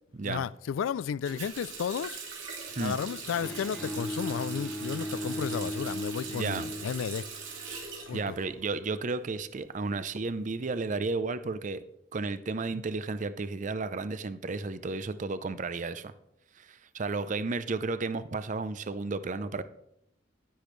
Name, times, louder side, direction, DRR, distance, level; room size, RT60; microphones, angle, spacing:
voice 1, 0.2-2.2 2.8-7.2 8.1-8.4, left 7 dB, 85° left, 0.3 m, -33 dB
Water tap faucet, 1.3-9.0 9.3-10.4, right 4 dB, 85° right, 2.5 m, -41 dB
Bowed string instrument, 3.3-7.5, equal, 5° left, 0.7 m, -37 dB
voice 2, 6.3-6.6 8.1-11.8 12.1-16.1 16.6-19.6, right 3 dB, 40° right, 0.5 m, -33 dB
10.5 x 10.0 x 3.2 m
head